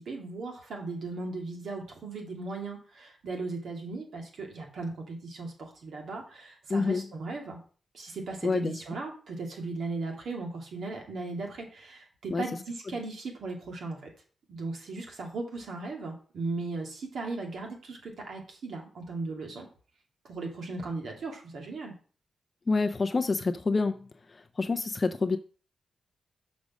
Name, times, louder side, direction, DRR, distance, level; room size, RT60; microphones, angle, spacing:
voice 1, 0.0-7.6 7.9-14.1 14.5-19.7 20.2-21.9, right 3 dB, 75° right, 1 dB, 2.3 m, -37 dB
voice 2, 6.7-7.0 8.4-8.8 12.3-12.4 22.7-24.0 24.6-25.4, left 4 dB, 35° left, 8 dB, 0.5 m, -27 dB
6.2 x 5.2 x 6.2 m, 0.41 s
cardioid pair, 85°, 0 cm